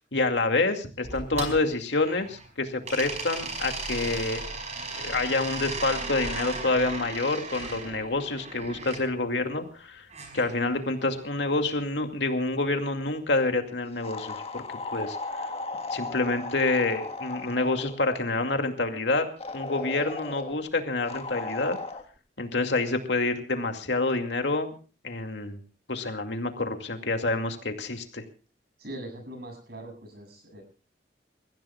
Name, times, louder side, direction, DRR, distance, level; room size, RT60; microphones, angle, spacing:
voice 1, 0.1-4.4 4.9-10.1 10.3-14.6 14.9-15.2 15.9-19.3 19.5-21.8 22.4-24.7 25.0-25.6 25.9-28.2, left 2 dB, 75° left, 5 dB, 2.4 m, -27 dB
sound 1, 1.0-2.5 2.8-9.0 10.1-11.2, right 3 dB, 40° right, 5.1 m, -36 dB
sound 2, 14.0-18.0 19.4-20.6 21.1-22.0, left 3 dB, 35° left, 1.5 m, -36 dB
voice 2, 28.8-30.6, right 1 dB, 60° right, 5 dB, 7.5 m, -41 dB
29.0 x 15.5 x 2.4 m, 0.37 s
head